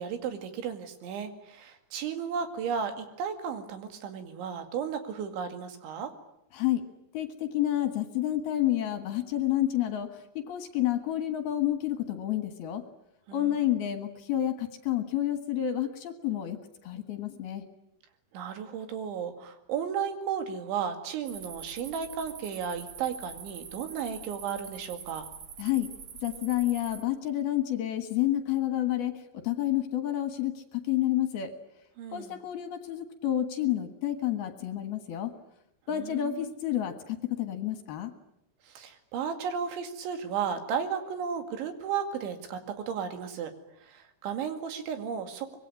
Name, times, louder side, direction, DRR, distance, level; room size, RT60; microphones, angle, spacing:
voice 1, 0.0-6.1 13.3-13.7 18.3-25.3 32.0-32.4 35.9-36.5 38.6-43.5 43.8-45.6, right 7 dB, 75° right, 8 dB, 4.5 m, -34 dB
voice 2, 6.5-6.9 7.1-12.8 13.3-17.6 25.6-25.9 26.2-31.5 32.1-35.3 35.9-38.1, left 12 dB, 65° left, 9 dB, 3.1 m, -29 dB
sound 1, 21.3-27.0, right 7 dB, 55° right, 1.9 m, -45 dB
24.5 x 22.5 x 9.8 m, 0.77 s
omnidirectional pair, 5.4 m